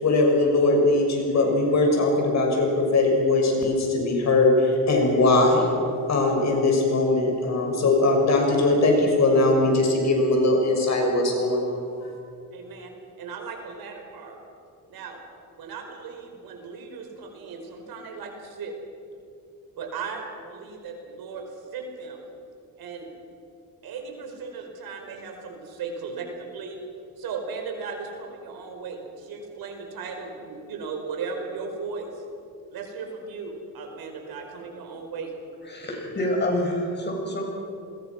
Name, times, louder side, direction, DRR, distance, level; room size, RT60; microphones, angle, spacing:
voice 1, 0.0-5.7 6.1-12.1, left 2 dB, 45° left, 1 dB, 6.5 m, -21 dB
voice 2, 12.5-12.9 13.2-14.4 14.9-15.2 15.5-18.7 19.8-22.3 22.8-23.1 23.8-26.8 27.2-32.2 32.7-35.3, right 5 dB, 75° right, 3 dB, 5.1 m, -36 dB
voice 3, 35.6-37.4, left 1 dB, 30° left, 1 dB, 6.8 m, -27 dB
29.0 x 21.5 x 6.1 m, 2.6 s
cardioid pair, 115°, 36 cm